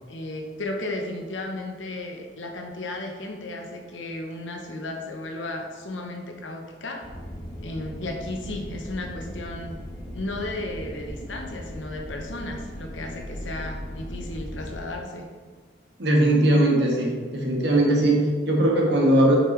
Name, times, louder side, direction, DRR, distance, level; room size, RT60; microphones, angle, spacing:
voice 1, 0.1-7.1 7.6-9.8 10.1-15.3, left 2 dB, 90° left, 2 dB, 1.0 m, -34 dB
sound 1, 7.0-14.8, equal, 20° left, 1.1 m, -38 dB
voice 2, 16.0-19.4, right 1 dB, 65° right, -1 dB, 1.4 m, -20 dB
6.9 x 5.4 x 3.3 m, 1.5 s
head